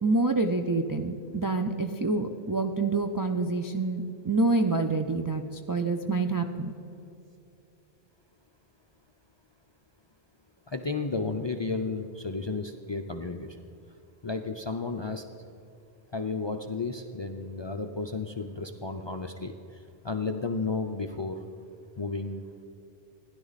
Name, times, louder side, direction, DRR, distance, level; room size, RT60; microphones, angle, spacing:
voice 1, 0.0-5.4 5.7-6.7, right 3 dB, 35° right, 4 dB, 0.3 m, -27 dB
voice 2, 10.7-13.6 14.2-15.2 16.1-21.4 22.0-22.6, left 3 dB, 40° left, 6 dB, 0.4 m, -33 dB
15.5 x 10.5 x 4.0 m, 2.8 s
omnidirectional pair, 1.1 m